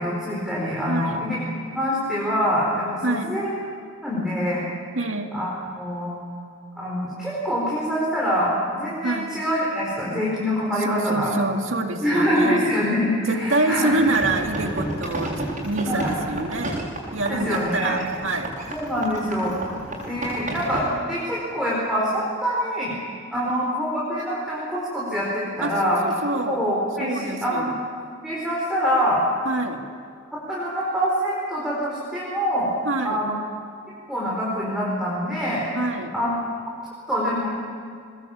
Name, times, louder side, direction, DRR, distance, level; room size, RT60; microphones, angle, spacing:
voice 1, 0.0-1.4 1.7-3.5 4.0-4.6 5.3-5.5 5.8-6.2 6.8-11.3 12.0-13.9 15.8-16.2 17.3-18.0 18.7-19.5 20.0-23.0 23.3-26.0 26.5-27.7 28.2-29.2 30.3-32.7 33.0-33.4 34.1-35.7 36.1-36.3 37.1-37.5, equal, ahead, -7 dB, 4.7 m, -25 dB
voice 2, 0.9-1.2 3.0-3.4 4.9-5.3 9.0-9.3 10.8-12.7 13.3-16.8 17.1-18.5 20.2-20.4 23.3-23.5 25.6-26.6 27.0-27.7 29.4-29.8 32.8-33.2 35.7-36.1, right 2 dB, 65° right, 4 dB, 2.2 m, -26 dB
sound 1, 13.9-20.8, right 1 dB, 35° right, 7.6 m, -32 dB
23.0 x 21.0 x 8.6 m, 2.3 s
head